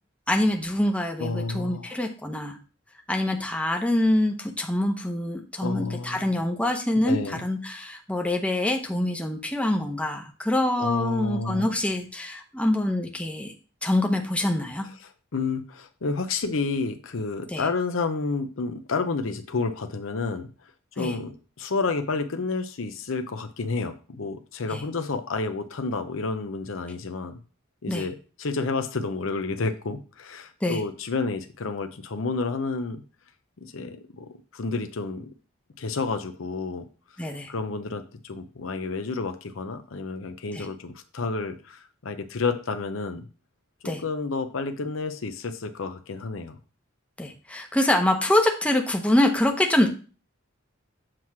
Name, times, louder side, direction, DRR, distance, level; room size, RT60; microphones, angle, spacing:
voice 1, 0.3-2.6 3.1-13.5 13.8-14.8 17.5-17.6 21.0-21.1 24.7-24.8 27.9-28.1 30.6-30.8 37.2-37.5 40.5-40.7 43.8-44.0 47.2-49.9, left 1 dB, 5° left, 2 dB, 0.8 m, -25 dB
voice 2, 1.2-2.0 5.6-6.4 7.0-7.5 10.8-11.7 15.0-20.5 21.0-27.4 27.8-33.0 33.6-35.3 35.8-36.9 37.5-43.3 43.8-46.6, left 4 dB, 75° left, 8 dB, 0.7 m, -30 dB
7.6 x 3.1 x 5.9 m, 0.36 s
head